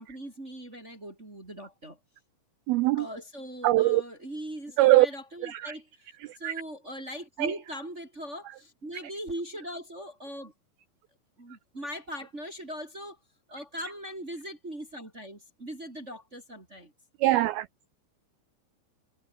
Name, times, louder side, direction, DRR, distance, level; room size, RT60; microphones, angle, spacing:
voice 1, 0.0-2.0 2.9-6.1 6.4-10.5 11.4-13.2 13.5-16.9, equal, 20° right, 3.0 m, -40 dB
voice 2, 2.7-3.1 3.6-4.0 4.8-5.1 5.4-5.8 6.2-6.5 7.4-7.5 17.2-17.7, right 17 dB, 85° right, 2.1 m, -22 dB
omnidirectional pair, 5.1 m